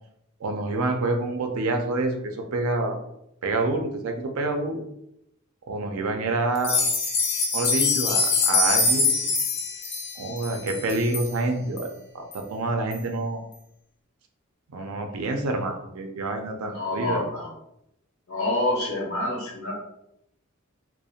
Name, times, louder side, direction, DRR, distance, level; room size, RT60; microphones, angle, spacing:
voice 1, 0.4-3.0 3.4-4.8 5.7-7.0 7.5-9.1 10.2-11.9 12.1-13.4 14.7-17.2, right 2 dB, 85° right, 4 dB, 0.4 m, -27 dB
sound 1, 6.5-11.3 11.8-11.9 12.3-12.4 12.9-13.0, left 3 dB, 50° left, 0.4 m, -24 dB
voice 2, 16.7-17.5 18.3-19.7, left 2 dB, 75° left, -3 dB, 0.9 m, -27 dB
2.3 x 2.0 x 2.7 m, 0.80 s
head